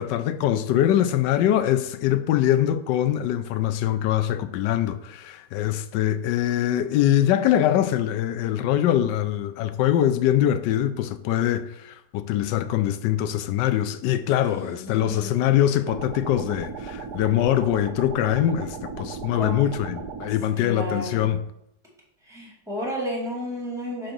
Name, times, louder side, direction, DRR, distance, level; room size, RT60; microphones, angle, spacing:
voice 1, 0.0-21.4, left 11 dB, 80° left, 1.2 m, -23 dB
voice 2, 14.5-15.4 19.4-19.6 20.6-21.3 22.3-24.1, equal, ahead, 2.0 m, -32 dB
sound 1, 15.9-20.3, right 5 dB, 70° right, 1.2 m, -36 dB
4.7 x 4.5 x 6.0 m
omnidirectional pair, 1.9 m